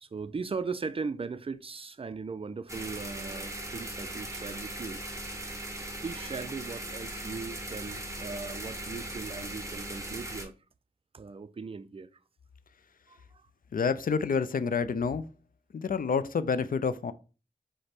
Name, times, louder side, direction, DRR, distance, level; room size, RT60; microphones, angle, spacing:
voice 1, 0.0-5.0 6.0-10.6 11.1-12.1 13.1-13.2, right 4 dB, 35° right, 0.4 m, -38 dB
sound 1, 2.7-10.5, right 1 dB, 20° right, 1.0 m, -39 dB
voice 2, 13.7-15.3 15.7-17.1, left 5 dB, 60° left, 0.4 m, -28 dB
4.9 x 2.1 x 4.3 m
cardioid pair, 45°, 16 cm